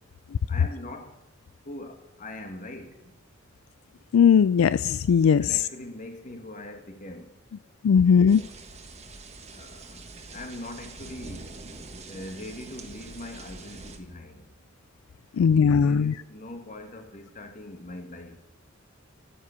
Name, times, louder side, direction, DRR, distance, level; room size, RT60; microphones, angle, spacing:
voice 1, 0.5-1.1 1.6-3.1 5.4-7.4 8.2-8.5 9.5-10.0 10.3-11.6 12.0-14.5 15.4-18.4, left 1 dB, 40° left, 1.8 m, -41 dB
voice 2, 4.1-5.6 7.8-8.4 15.4-16.1, left 7 dB, 90° left, 0.3 m, -19 dB
sound 1, 8.3-14.0, right 3 dB, 30° right, 1.4 m, -44 dB
11.5 x 9.5 x 6.8 m
head